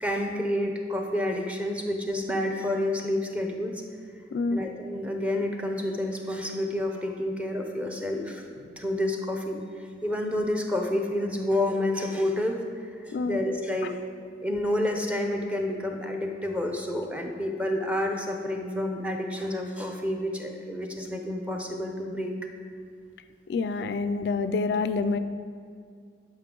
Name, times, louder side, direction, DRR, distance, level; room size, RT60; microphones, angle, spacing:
voice 1, 0.0-3.8 4.5-8.5 8.8-14.0 14.4-22.4, left 1 dB, 5° right, 2 dB, 0.6 m, -29 dB
voice 2, 23.5-25.2, left 4 dB, 65° left, 11 dB, 0.3 m, -27 dB
10.5 x 5.3 x 3.8 m, 2.2 s
head